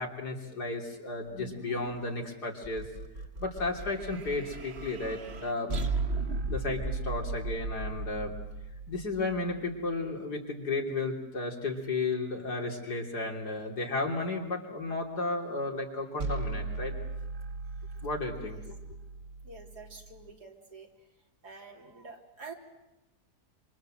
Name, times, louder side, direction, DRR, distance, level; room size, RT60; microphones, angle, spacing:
voice 1, 0.0-2.9 3.4-6.0 6.5-8.3 8.9-16.9 18.0-18.7, left 3 dB, 90° left, 1 dB, 3.9 m, -33 dB
sound 1, 2.6-9.9 16.2-20.3, right 3 dB, 45° right, 1.5 m, -36 dB
voice 2, 19.4-20.9 21.4-22.5, right 4 dB, 85° right, 1 dB, 3.8 m, -47 dB
26.5 x 26.5 x 7.8 m, 0.93 s
omnidirectional pair, 1.7 m